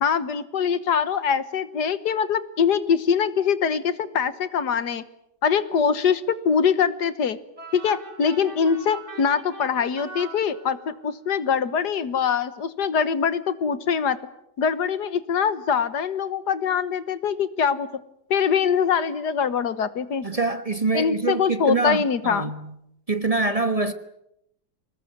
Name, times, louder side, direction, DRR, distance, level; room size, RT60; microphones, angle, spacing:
voice 1, 0.0-5.0 5.4-7.4 7.7-14.2 14.6-17.9 18.3-20.3 20.9-22.5, left 7 dB, 80° left, 1.9 m, -23 dB
sound 1, 7.6-11.1, right 3 dB, 45° right, 3.8 m, -41 dB
voice 2, 20.2-22.7 23.1-23.9, right 3 dB, 25° right, 1.2 m, -25 dB
25.0 x 20.0 x 9.6 m
omnidirectional pair, 1.8 m